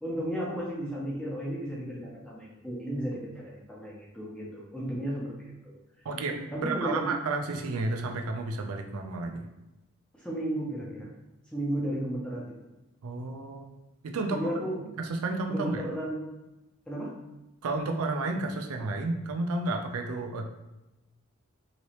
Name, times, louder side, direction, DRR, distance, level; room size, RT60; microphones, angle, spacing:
voice 1, 0.0-6.1 6.5-7.1 10.1-11.1 11.5-12.5 14.3-14.8 15.5-16.4 16.9-17.1, right 1 dB, 5° left, -6 dB, 0.8 m, -34 dB
voice 2, 6.0-9.5 13.0-13.7 14.0-14.4 15.0-15.8 17.6-20.5, right 3 dB, 85° right, 4 dB, 0.4 m, -31 dB
3.1 x 2.9 x 2.8 m, 0.99 s
head